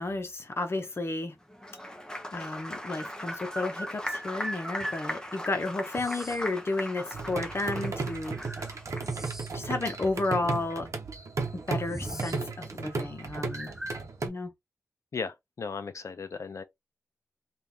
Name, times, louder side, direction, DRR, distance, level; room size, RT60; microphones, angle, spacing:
voice 1, 0.0-1.4 2.3-8.4 9.5-10.9 11.7-13.7 14.2-14.5, left 2 dB, 50° left, 0.8 m, -32 dB
Applause, 1.5-9.3, left 1 dB, 15° left, 0.8 m, -39 dB
sound 1, 1.7-1.8 2.9-5.1 5.9-6.5 7.6-7.7 8.3-9.7 10.0-10.1 10.9-11.0 11.3-12.4 12.7-13.0 13.5-14.0, equal, 5° right, 0.4 m, -40 dB
sound 2, 7.1-14.3, right 4 dB, 65° right, 0.8 m, -35 dB
voice 2, 15.1-16.6, left 5 dB, 65° left, 0.5 m, -36 dB
3.4 x 2.4 x 2.8 m
cardioid pair, 45°, 6 cm